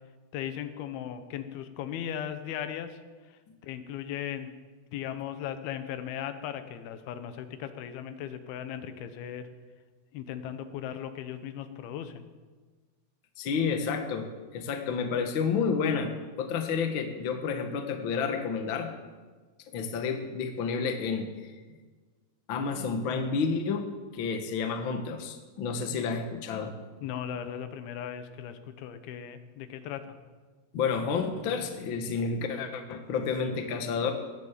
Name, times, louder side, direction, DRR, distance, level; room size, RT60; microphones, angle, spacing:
voice 1, 0.3-3.0 3.3-4.5 4.9-9.5 10.1-12.3 27.0-30.2, left 9 dB, 90° left, 9 dB, 2.9 m, -37 dB
voice 2, 13.4-16.1 16.4-18.9 19.7-21.5 22.5-23.9 24.1-26.7 30.7-34.1, left 5 dB, 65° left, 5 dB, 1.2 m, -30 dB
16.5 x 9.8 x 7.5 m, 1.4 s
omnidirectional pair, 4.4 m